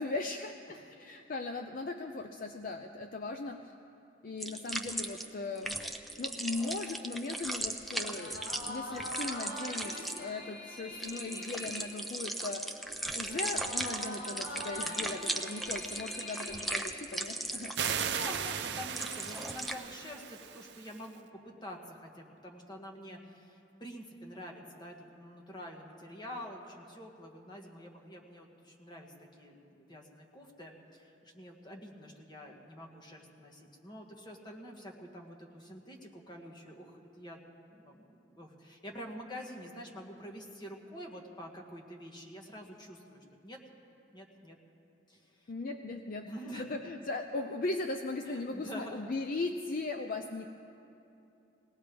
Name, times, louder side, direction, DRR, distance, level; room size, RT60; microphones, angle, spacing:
voice 1, 0.0-3.6 4.2-5.8 6.2-12.6 13.1-17.9 45.5-46.3 46.6-50.5, left 3 dB, 50° left, 5 dB, 0.5 m, -38 dB
sound 1, 4.4-19.7, right 1 dB, ahead, 0.6 m, -38 dB
sound 2, 7.9-17.6, left 1 dB, 75° left, 1.7 m, -44 dB
sound 3, 17.7-21.1, right 7 dB, 65° right, 0.7 m, -36 dB
voice 2, 17.9-37.4 37.7-43.6 44.1-44.6 45.1-45.5 46.2-46.6 48.2-49.1, equal, 25° left, 0 dB, 1.5 m, -47 dB
21.0 x 18.0 x 3.4 m, 2.7 s
head